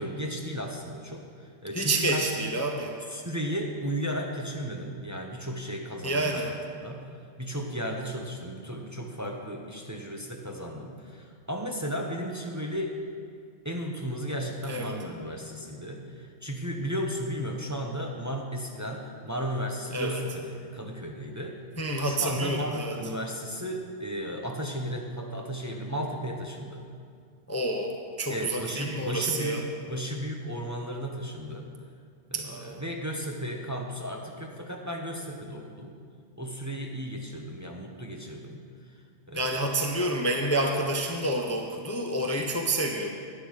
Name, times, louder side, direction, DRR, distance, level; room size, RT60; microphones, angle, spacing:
voice 1, 0.0-2.5 3.1-7.1 7.4-12.9 13.6-21.6 22.0-26.8 28.3-29.6 29.9-31.7 32.3-35.9 36.4-38.6 39.3-39.8, equal, 15° right, 1 dB, 0.9 m, -34 dB
voice 2, 1.7-2.9 6.0-6.5 14.7-14.9 19.9-20.2 21.8-22.9 27.5-29.6 32.3-32.8 39.3-43.1, right 1 dB, 15° left, 2 dB, 0.7 m, -28 dB
12.0 x 9.1 x 6.4 m, 2.2 s
omnidirectional pair, 1.2 m